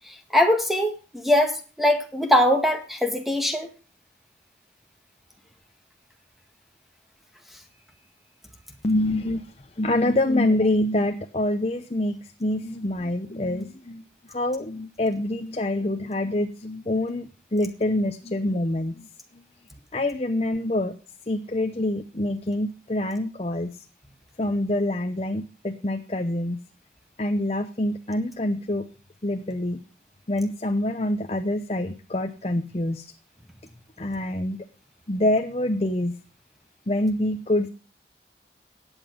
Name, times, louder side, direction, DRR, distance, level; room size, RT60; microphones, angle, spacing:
voice 1, 0.3-3.7, left 1 dB, ahead, 4 dB, 1.8 m, -21 dB
voice 2, 8.8-9.4 9.8-14.0 14.3-19.1 19.9-20.9 21.3-23.7 24.4-26.6 27.2-28.9 29.2-29.8 30.3-33.1 34.0-34.6 35.1-36.1 36.9-37.7, left 1 dB, 35° left, 7 dB, 0.8 m, -26 dB
14.0 x 9.0 x 5.1 m, 0.35 s
head